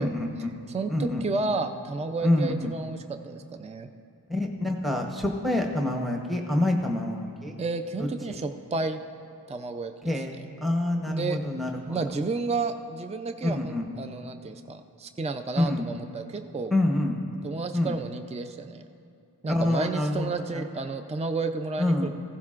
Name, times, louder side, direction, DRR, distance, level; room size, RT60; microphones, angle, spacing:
voice 1, 0.0-0.5 0.9-1.2 2.2-2.7 4.3-7.5 8.0-8.4 10.0-12.0 13.4-13.8 15.6-15.9 16.7-17.2 17.7-17.9 19.5-20.1 20.5-20.7 21.8-22.1, left 1 dB, ahead, 2 dB, 0.9 m, -27 dB
voice 2, 0.7-3.9 7.6-9.0 9.5-10.2 11.1-11.4 11.9-16.7 17.4-18.8 19.4-22.1, right 3 dB, 15° right, 7 dB, 0.4 m, -31 dB
15.5 x 15.0 x 2.5 m, 2.6 s
wide cardioid pair, 50°, 39 cm